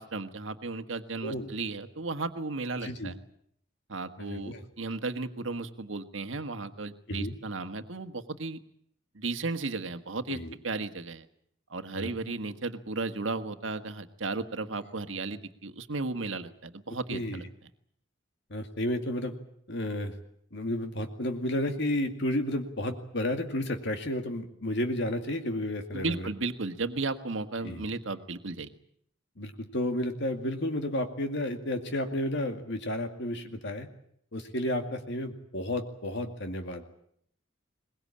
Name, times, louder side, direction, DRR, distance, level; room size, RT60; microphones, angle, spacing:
voice 1, 0.0-3.2 3.9-8.6 9.1-11.2 11.7-17.4 25.9-28.7, right 3 dB, 75° right, 8 dB, 1.6 m, -35 dB
voice 2, 2.8-3.1 4.2-4.6 7.1-7.3 10.3-10.5 11.9-12.1 17.1-17.4 18.5-19.3 19.7-20.1 20.5-26.3 27.6-27.8 29.4-33.9 34.3-36.8, left 1 dB, 65° left, 5 dB, 2.2 m, -32 dB
22.5 x 20.5 x 8.7 m, 0.68 s
head